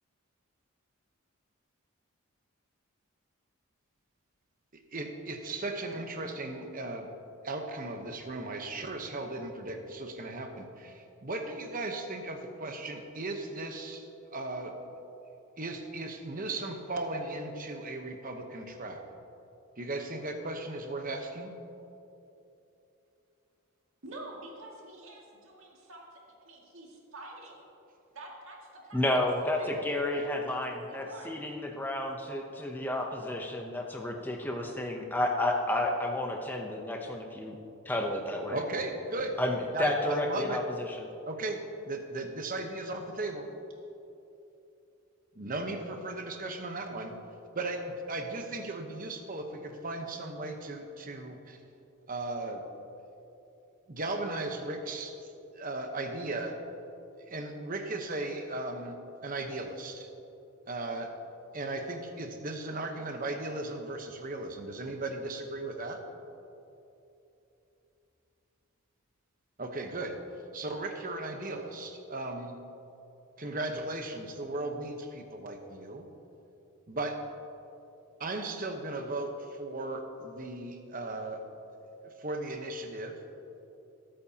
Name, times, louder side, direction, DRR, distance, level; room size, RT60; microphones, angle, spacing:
voice 1, 4.9-7.1 7.4-14.8 15.6-19.0 19.8-21.5 38.5-39.4 39.7-40.6 41.3-43.5 45.3-47.1 47.5-51.6 52.1-52.6 53.9-56.6 57.3-59.0 59.2-60.1 60.7-61.1 61.5-66.0 69.6-70.2 70.5-72.6 73.4-76.0 76.9-77.2 78.2-81.4 82.0-83.2, right 2 dB, 40° right, 4 dB, 1.0 m, -36 dB
voice 2, 24.0-27.6 28.1-29.2 29.6-31.3, right 2 dB, 60° right, -2 dB, 2.2 m, -48 dB
voice 3, 28.9-37.6 37.8-38.6 39.4-40.6 41.0-41.1, left 1 dB, 10° left, 1 dB, 0.7 m, -31 dB
20.5 x 8.8 x 2.9 m, 2.9 s
head